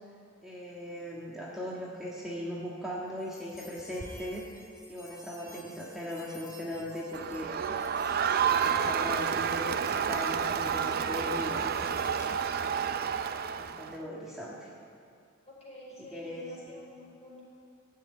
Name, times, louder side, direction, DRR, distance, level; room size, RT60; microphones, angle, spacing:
voice 1, 0.4-4.5 4.9-7.8 8.4-11.7 12.6-12.7 13.5-14.7 16.1-16.4, equal, ahead, -7 dB, 1.6 m, -39 dB
sound 1, 3.2-12.7, left 1 dB, 15° left, 1.5 m, -52 dB
Crowd, 7.1-14.0, right 7 dB, 50° right, 0.5 m, -30 dB
voice 2, 15.5-17.4, left 1 dB, 30° left, -3 dB, 4.3 m, -49 dB
15.0 x 7.7 x 9.5 m, 2.3 s
head